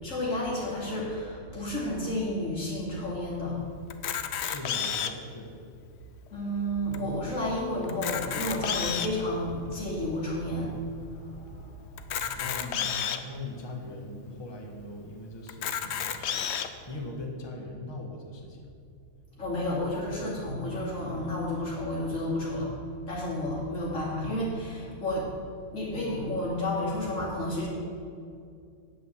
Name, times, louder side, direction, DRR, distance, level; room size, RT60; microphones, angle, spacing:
voice 1, 0.0-3.6 6.3-12.4 19.4-22.7 23.1-25.3 25.7-27.7, left 1 dB, 90° left, -6 dB, 3.1 m, -31 dB
Camera, 3.9-5.3 5.9-6.0 6.3-6.4 6.9-7.0 7.8-9.2 9.8-9.9 12.0-13.2 13.9-14.0 14.3-14.4 15.5-16.7, left 8 dB, 65° left, 0.9 m, -31 dB
voice 2, 4.4-5.6 12.3-16.5 16.9-18.7, left 2 dB, 20° left, 0 dB, 1.2 m, -40 dB
9.1 x 6.4 x 7.3 m, 2.4 s
omnidirectional pair, 1.3 m